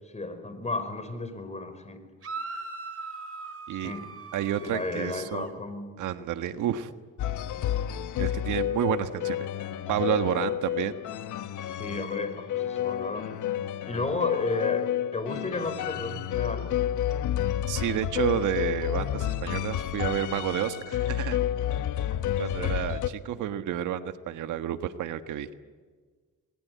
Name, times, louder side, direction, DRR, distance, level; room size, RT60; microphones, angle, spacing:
voice 1, 0.1-2.0 3.8-4.1 4.6-5.9 10.8-11.3 11.8-13.3 13.8-16.7 22.6-22.8, left 2 dB, 20° left, 9 dB, 5.0 m, -33 dB
sound 1, 2.2-5.5, right 4 dB, 50° right, 3.9 m, -40 dB
voice 2, 4.3-5.5 6.0-6.9 8.2-9.5 9.9-11.0 17.7-21.4 22.4-25.5, right 10 dB, 80° right, 10 dB, 1.5 m, -30 dB
sound 2, 7.2-23.1, left 11 dB, 80° left, 1.3 m, -30 dB
27.0 x 21.5 x 9.4 m, 1.5 s
cardioid pair, 90°, 30 cm